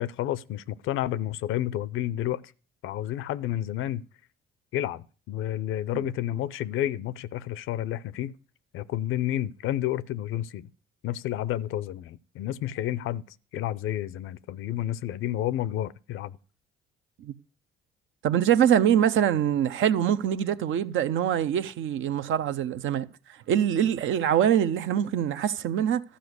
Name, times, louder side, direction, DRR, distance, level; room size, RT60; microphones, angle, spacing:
voice 1, 0.0-2.4 2.8-4.0 4.7-8.3 8.7-10.7 11.0-13.2 13.5-16.4, left 12 dB, 80° left, 0.6 m, -30 dB
voice 2, 18.2-23.1 23.5-26.0, right 9 dB, 70° right, 0.7 m, -24 dB
12.5 x 5.1 x 8.0 m
supercardioid pair, 75°, 21 cm